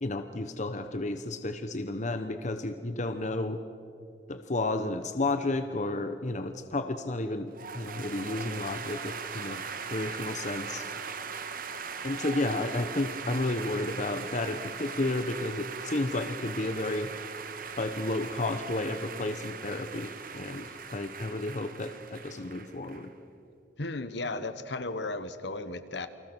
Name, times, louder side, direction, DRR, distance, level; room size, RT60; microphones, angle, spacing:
voice 1, 0.0-3.6 4.3-9.6 9.9-10.8 12.0-17.1 17.8-23.1, left 2 dB, 40° left, 8 dB, 0.9 m, -32 dB
sound 1, 7.5-23.1, right 6 dB, 50° right, 1.4 m, -40 dB
voice 2, 23.8-26.1, left 2 dB, 70° left, 11 dB, 1.3 m, -35 dB
29.0 x 25.5 x 6.2 m, 2.6 s
head